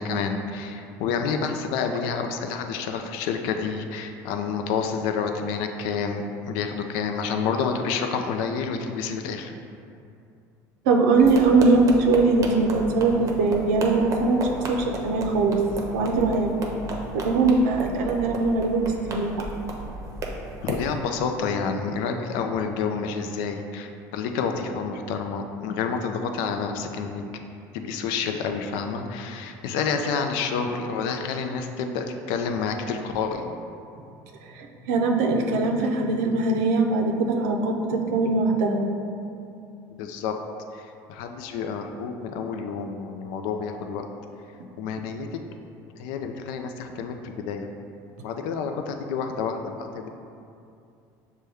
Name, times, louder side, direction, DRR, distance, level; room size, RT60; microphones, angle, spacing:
voice 1, 0.0-9.5 20.6-27.2 27.7-33.5 40.0-40.3 40.7-44.0 44.8-45.3 46.0-47.7 48.2-50.1, left 5 dB, 75° left, 5 dB, 0.4 m, -29 dB
voice 2, 10.9-15.6 15.9-16.5 17.1-19.3 34.5-38.9, right 3 dB, 85° right, 2 dB, 0.5 m, -21 dB
sound 1, 11.2-20.9, right 2 dB, 40° right, 0.6 m, -34 dB
6.1 x 2.2 x 3.4 m, 2.6 s
supercardioid pair, 105°, 8 cm